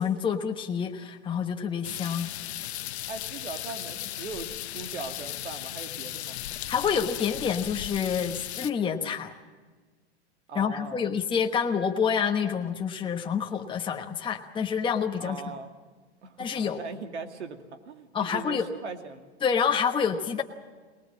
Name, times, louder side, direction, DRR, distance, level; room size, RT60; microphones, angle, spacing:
voice 1, 0.0-2.3 6.7-9.3 10.5-15.4 16.4-16.8 18.1-18.6 19.4-20.4, left 7 dB, 15° left, 3 dB, 1.2 m, -28 dB
sound 1, 1.8-8.7, left 13 dB, 75° left, 1.0 m, -36 dB
voice 2, 3.1-6.4 10.5-11.1 15.2-15.7 16.2-19.3, right 4 dB, 90° right, 6 dB, 2.5 m, -40 dB
23.5 x 19.5 x 7.5 m, 1.4 s
hypercardioid pair, 120°, 33 cm